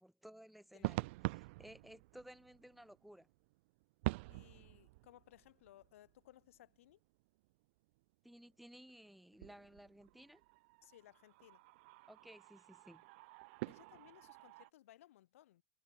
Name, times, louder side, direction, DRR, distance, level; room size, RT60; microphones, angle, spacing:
voice 1, 0.0-3.3 8.2-10.4 12.1-13.0, equal, ahead, 5.1 m, -57 dB
sound 1, 0.8-6.6 6.9-7.0 8.7-9.1 9.3-14.7, right 23 dB, 55° right, 0.5 m, -46 dB
voice 2, 4.3-7.0 10.8-11.6 13.7-15.6, left 14 dB, 70° left, 2.7 m, -62 dB
hypercardioid pair, 120°, 8 cm